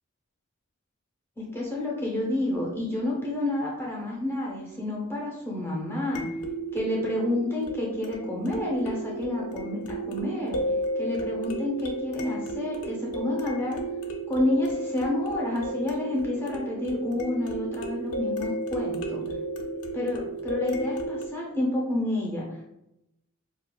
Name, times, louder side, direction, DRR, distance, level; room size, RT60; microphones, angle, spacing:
sound 1, 1.4-1.5 6.2-21.3, right 1 dB, 80° left, 0.5 m, -33 dB
voice 1, 1.4-6.2 6.7-10.6 11.0-13.8 14.3-19.2 19.9-22.5, left 1 dB, 10° left, -3 dB, 0.6 m, -29 dB
4.3 x 2.4 x 2.2 m, 0.86 s
head